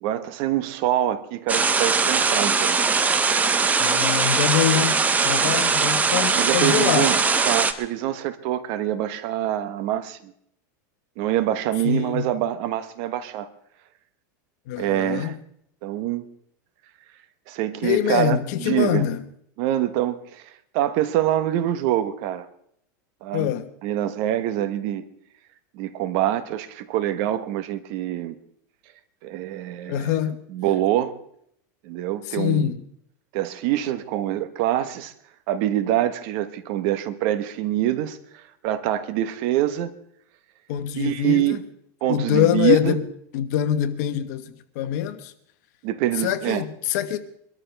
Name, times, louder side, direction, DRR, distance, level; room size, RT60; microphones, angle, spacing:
voice 1, 0.0-2.9 6.3-7.2 7.4-10.2 11.2-13.5 14.8-15.3 15.8-16.2 17.5-19.0 19.6-20.4 20.7-22.5 23.2-23.5 23.8-25.0 25.7-28.3 29.2-30.1 30.5-31.1 31.8-32.7 33.3-35.1 35.5-38.2 38.6-39.9 41.0-41.6 42.0-43.0 45.8-46.6, right 13 dB, 55° right, 1.2 m, -25 dB
sound 1, 1.5-7.7, right 4 dB, 15° right, 0.9 m, -21 dB
voice 2, 3.8-7.2 11.8-12.3 14.7-15.3 17.8-19.2 23.3-23.7 29.9-30.4 32.2-32.8 40.7-41.6 42.1-43.0 43.3-45.3 46.2-47.2, left 11 dB, 60° left, 1.3 m, -24 dB
23.5 x 13.0 x 3.4 m
supercardioid pair, 145°, 10 cm